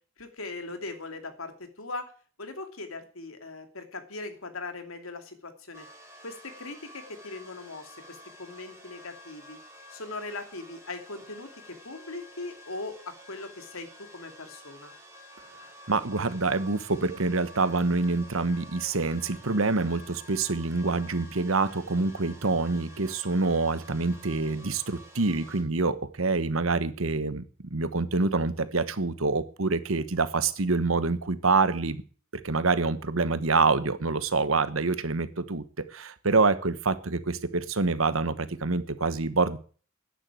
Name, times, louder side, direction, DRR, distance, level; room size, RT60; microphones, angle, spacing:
voice 1, 0.2-1.5 1.8-2.0 2.4-5.9 6.2-9.6 9.9-14.9, left 3 dB, 85° left, 7 dB, 2.7 m, -40 dB
sound 1, 5.7-25.6, equal, 15° right, 3.5 m, -50 dB
voice 2, 15.9-32.0 32.4-35.6 35.9-39.6, right 3 dB, 75° right, 13 dB, 1.2 m, -26 dB
10.5 x 10.0 x 9.1 m, 0.42 s
head